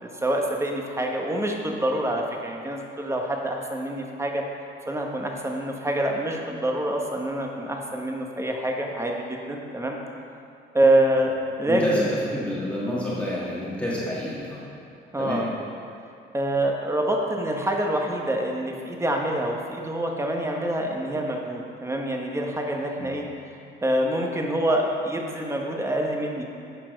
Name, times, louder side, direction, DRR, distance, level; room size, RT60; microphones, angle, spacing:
voice 1, 0.0-4.4 4.8-10.0 10.7-12.1 15.1-15.5 16.3-23.3 23.8-26.4, right 1 dB, 15° right, 1 dB, 1.2 m, -26 dB
voice 2, 11.7-14.6 15.2-15.4 23.0-23.1, left 1 dB, 5° left, -8 dB, 1.7 m, -28 dB
10.0 x 4.7 x 5.1 m, 2.6 s
cardioid pair, 90°, 20 cm